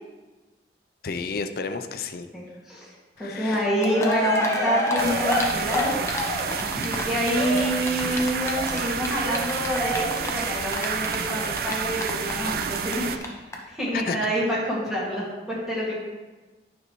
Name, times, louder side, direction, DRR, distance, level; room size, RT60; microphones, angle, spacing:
voice 1, 1.0-2.3 3.2-3.7 12.4-12.5 13.9-14.2, left 4 dB, 50° left, 8 dB, 0.4 m, -31 dB
voice 2, 2.3-2.9 3.2-6.0 6.6-13.2 13.7-15.9, equal, ahead, -8 dB, 1.9 m, -27 dB
Cheering, 3.5-3.6 3.8-12.9 13.2-13.3 13.5-13.6, left 1 dB, 15° left, 0.7 m, -28 dB
sound 1, 5.0-13.2, right 6 dB, 55° right, 0.3 m, -30 dB
9.4 x 5.4 x 3.0 m, 1.2 s
head